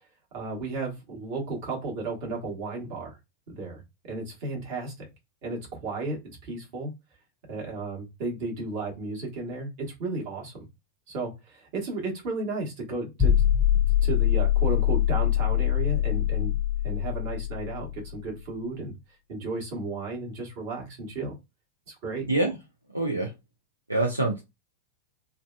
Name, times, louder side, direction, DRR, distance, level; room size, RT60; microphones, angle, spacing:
voice 1, 0.3-3.2 3.5-5.1 5.4-6.9 7.5-10.7 11.1-13.4 14.0-16.5 16.8-18.9 19.3-21.3 21.9-22.3, right 3 dB, 50° right, 1.2 m, -34 dB
sound 1, 13.2-18.2, left 11 dB, 20° left, 0.5 m, -24 dB
voice 2, 22.9-23.3 23.9-24.4, right 2 dB, 85° right, 0.5 m, -25 dB
2.6 x 2.2 x 2.3 m
figure-of-eight pair, 90°, 0 cm